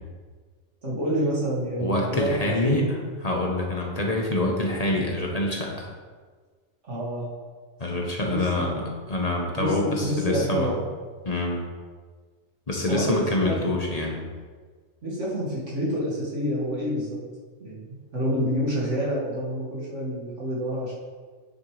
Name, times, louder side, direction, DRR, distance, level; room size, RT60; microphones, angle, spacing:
voice 1, 0.8-3.1 6.9-7.3 8.3-8.7 9.6-10.8 12.9-13.8 15.0-17.2 17.6-20.9, equal, 90° right, -6 dB, 2.5 m, -28 dB
voice 2, 1.8-2.8 3.2-5.9 7.8-10.7 11.2-11.7 12.7-14.2, left 2 dB, 35° left, -1 dB, 1.1 m, -26 dB
9.8 x 6.7 x 3.3 m, 1.5 s
omnidirectional pair, 1.2 m